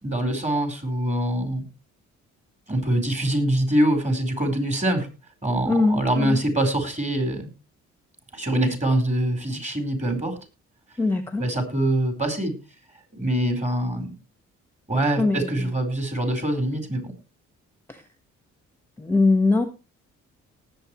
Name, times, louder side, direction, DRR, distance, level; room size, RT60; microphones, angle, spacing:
voice 1, 0.0-1.6 2.7-5.1 5.4-7.5 8.3-10.4 11.4-12.5 13.1-14.1 14.9-17.1, right 1 dB, 25° right, 6 dB, 4.3 m, -24 dB
voice 2, 5.7-6.4 11.0-11.4 15.2-15.5 19.0-19.6, left 3 dB, 5° left, 8 dB, 1.3 m, -21 dB
19.0 x 8.0 x 3.1 m, 0.30 s
cardioid pair, 90°, 30 cm